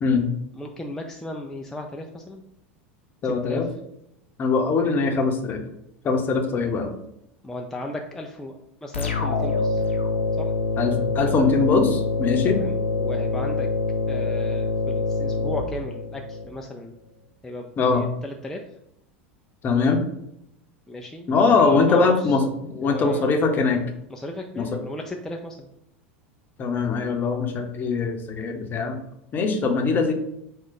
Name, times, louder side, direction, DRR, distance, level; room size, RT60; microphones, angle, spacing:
voice 1, 0.5-2.4 3.2-3.6 7.4-9.8 10.4-10.5 12.5-13.7 14.1-16.9 17.4-18.6 20.9-22.2 22.7-23.4 24.1-25.7, left 1 dB, 5° left, 1 dB, 0.4 m, -35 dB
voice 2, 3.2-3.7 4.4-5.6 6.0-6.9 10.8-12.6 17.8-18.0 19.6-20.0 21.3-23.8 24.6-24.8 26.6-29.0 29.3-30.1, left 4 dB, 30° left, 4 dB, 0.8 m, -22 dB
sound 1, 8.9-16.4, left 3 dB, 75° left, 0.7 m, -25 dB
4.7 x 2.3 x 3.8 m, 0.80 s
figure-of-eight pair, 80°, 7 cm